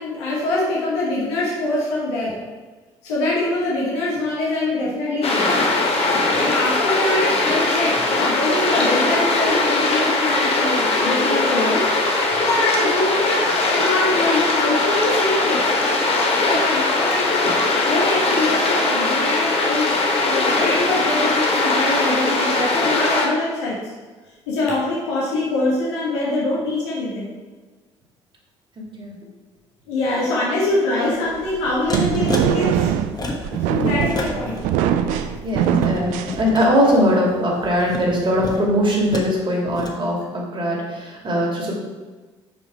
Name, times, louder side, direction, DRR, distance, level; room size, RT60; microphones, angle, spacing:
voice 1, 0.0-2.4 3.0-5.5 6.3-15.7 16.4-17.5 17.8-23.8 24.5-27.3 29.9-32.9 33.4-34.7 35.0-35.2, left 2 dB, 70° left, -5 dB, 1.4 m, -24 dB
sound 1, 5.2-23.3, left 2 dB, 40° left, 1.4 m, -20 dB
sound 2, 31.3-37.0, right 9 dB, 60° right, 0.4 m, -22 dB
sound 3, 31.9-32.5 33.0-33.6 33.9-34.6 35.0-36.7 37.6-39.3 39.7-39.9, left 2 dB, 25° left, 1.2 m, -29 dB
voice 2, 35.4-41.7, equal, 35° right, -2 dB, 2.3 m, -21 dB
6.1 x 4.9 x 4.6 m, 1.3 s
figure-of-eight pair, 55°, 15 cm